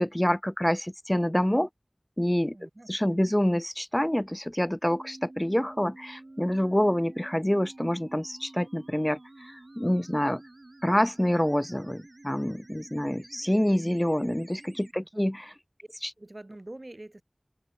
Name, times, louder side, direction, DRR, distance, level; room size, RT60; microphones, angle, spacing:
voice 1, 0.0-1.7 2.2-2.6 2.9-10.4 10.8-15.5, equal, 15° left, 0.4 m, -27 dB
voice 2, 2.5-3.3 14.9-15.3 16.2-17.2, right 1 dB, 45° right, 1.8 m, -46 dB
sound 1, 4.9-14.9, right 2 dB, 60° right, 4.2 m, -50 dB
open air
wide cardioid pair, 45°, 0 cm